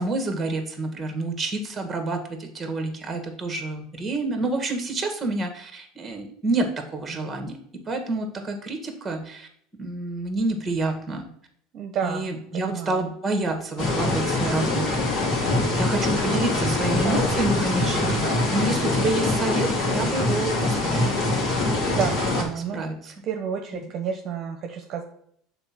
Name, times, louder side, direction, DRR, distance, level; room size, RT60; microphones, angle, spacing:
voice 1, 0.0-7.6 7.8-9.5 9.8-11.3 12.0-15.3 15.7-21.2 22.5-23.1 23.7-23.8, right 2 dB, 20° right, 5 dB, 1.7 m, -28 dB
voice 2, 11.7-12.3 12.5-13.0 17.0-17.4 21.9-22.8 23.2-25.0, right 7 dB, 45° right, 4 dB, 1.0 m, -30 dB
sound 1, 13.8-22.4, left 2 dB, 50° left, 2.7 m, -24 dB
6.8 x 4.0 x 6.0 m, 0.67 s
supercardioid pair, 110°, 0 cm